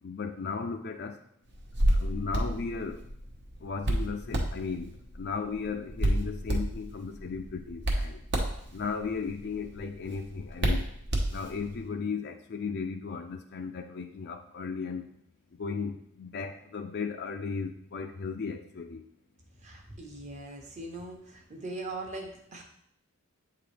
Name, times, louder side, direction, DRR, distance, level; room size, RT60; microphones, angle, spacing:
voice 1, 0.0-1.2 1.9-3.0 3.6-8.2 8.7-10.9 11.3-15.1 15.6-19.0, left 5 dB, 50° left, 5 dB, 0.4 m, -35 dB
Hands, 1.5-11.8, right 1 dB, 55° right, 1.0 m, -31 dB
voice 2, 19.6-22.6, right 2 dB, 35° right, 2 dB, 1.0 m, -40 dB
8.0 x 3.8 x 3.3 m, 0.72 s
head